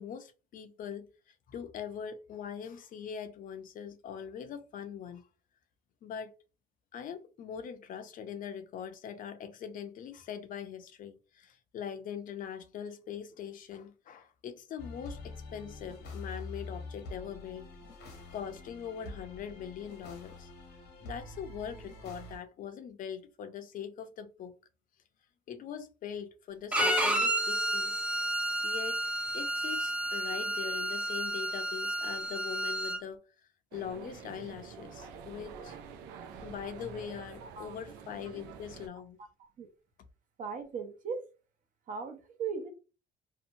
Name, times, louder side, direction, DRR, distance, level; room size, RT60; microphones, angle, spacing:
voice 1, 0.0-5.3 6.0-6.3 6.9-17.7 18.3-20.5 21.0-24.5 25.5-28.1 28.6-33.2 33.7-35.8 36.4-39.2, left 8 dB, 55° left, 0.5 m, -42 dB
sound 1, 14.8-22.4, left 3 dB, 85° left, 1.0 m, -46 dB
Bowed string instrument, 26.7-33.0, right 1 dB, 5° right, 0.4 m, -31 dB
sound 2, 33.7-38.9, right 6 dB, 90° right, 0.4 m, -47 dB
voice 2, 37.4-37.7 39.2-39.3 39.6-39.7 40.4-41.2 41.9-42.7, right 6 dB, 50° right, 0.7 m, -38 dB
2.7 x 2.2 x 2.7 m
cardioid pair, 110°, 17 cm